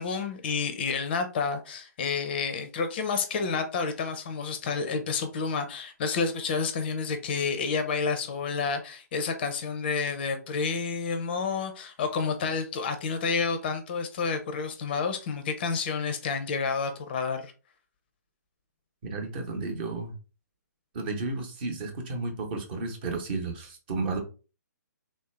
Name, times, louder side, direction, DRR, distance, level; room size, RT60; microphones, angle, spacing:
voice 1, 0.0-17.5, left 5 dB, 35° left, 0.5 m, -29 dB
voice 2, 19.0-20.1 20.9-24.2, right 3 dB, 35° right, 0.9 m, -32 dB
3.2 x 2.7 x 3.2 m
figure-of-eight pair, 135°, 10 cm